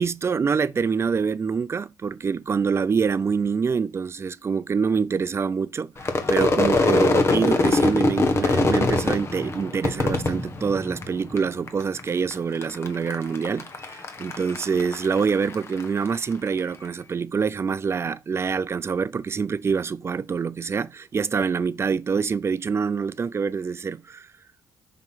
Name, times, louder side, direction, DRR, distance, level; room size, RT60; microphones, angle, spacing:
voice 1, 0.0-5.9 6.3-24.3, right 5 dB, 35° right, 0.4 m, -25 dB
Crowd / Fireworks, 6.0-11.4 11.7-12.3 12.6-16.2, left 3 dB, 35° left, 1.2 m, -23 dB
5.9 x 2.9 x 5.5 m
cardioid pair, 75°, 8 cm